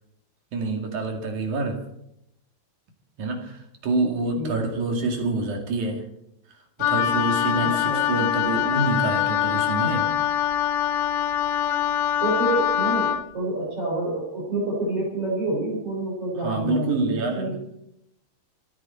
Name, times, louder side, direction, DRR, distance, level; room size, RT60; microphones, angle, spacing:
voice 1, 0.5-1.8 3.2-6.0 6.8-10.1 16.4-17.5, right 3 dB, 50° right, 2 dB, 3.3 m, -26 dB
Wind instrument woodwind instrument, 6.8-13.2, left 10 dB, 85° left, 1.9 m, -24 dB
voice 2, 7.6-8.2 12.2-17.6, right 2 dB, 35° right, -4 dB, 4.7 m, -28 dB
28.5 x 9.5 x 4.3 m, 0.78 s
omnidirectional pair, 4.8 m